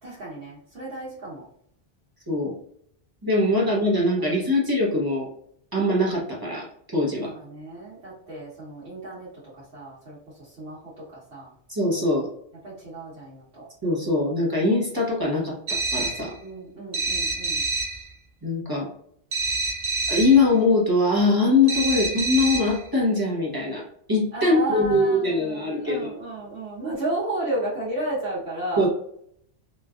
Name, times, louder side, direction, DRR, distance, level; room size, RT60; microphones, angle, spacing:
voice 1, 0.0-1.4 3.4-3.7 4.2-4.4 7.2-9.3 9.6-11.5 12.6-13.6 16.4-17.6 24.3-28.9, right 1 dB, 75° right, -9 dB, 1.3 m, -33 dB
voice 2, 3.2-5.3 5.7-6.7 6.9-7.3 11.7-12.3 13.8-15.6 15.9-16.3 18.4-18.9 20.1-26.1 28.8-28.9, left 2 dB, 20° right, -4 dB, 0.9 m, -22 dB
sound 1, 15.7-16.3 16.9-18.0 19.3-20.4 21.7-22.8, right 3 dB, 55° right, 0.6 m, -27 dB
3.1 x 2.4 x 2.3 m, 0.68 s
omnidirectional pair, 1.1 m